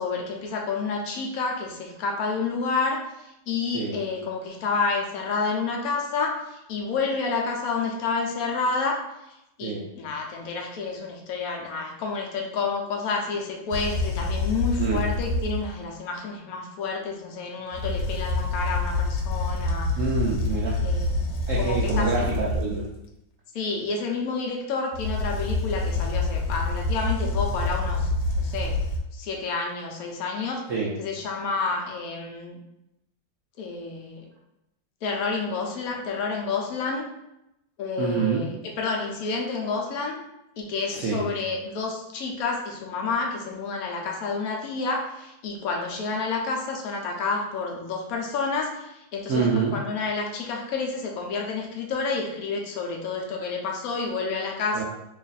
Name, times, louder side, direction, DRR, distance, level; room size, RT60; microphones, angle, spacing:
voice 1, 0.0-9.0 9.6-19.9 20.8-21.2 21.6-22.6 23.5-28.1 28.4-28.8 29.1-30.6 31.0-32.6 33.6-34.3 35.0-37.1 37.8-40.2 40.6-54.8, left 4 dB, 65° left, 1 dB, 0.9 m, -29 dB
sound 1, 13.7-15.8 17.7-22.9 24.9-29.0, left 2 dB, 90° left, 1.3 m, -27 dB
voice 2, 20.0-20.8 21.5-22.9 30.7-30.9 38.0-38.4 40.9-41.2 49.3-49.8 54.7-54.8, right 5 dB, 85° right, -3 dB, 0.7 m, -26 dB
3.0 x 2.5 x 3.9 m, 0.85 s
omnidirectional pair, 2.0 m